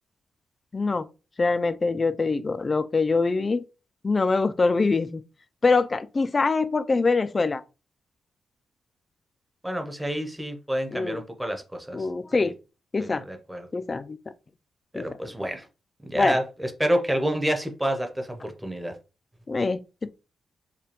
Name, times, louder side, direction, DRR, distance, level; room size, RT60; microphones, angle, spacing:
voice 1, 0.7-1.0 1.4-3.6 4.0-5.2 5.6-7.6 10.9-11.2 11.9-12.5 12.9-13.2 13.7-14.2 14.9-15.1 16.1-16.4 19.5-20.1, left 3 dB, 30° left, 0.3 m, -24 dB
voice 2, 9.6-12.0 12.4-12.5 13.0-13.7 14.9-15.7 16.0-19.0, equal, 5° right, 0.7 m, -28 dB
4.9 x 2.3 x 2.9 m
wide cardioid pair, 125°, 0 cm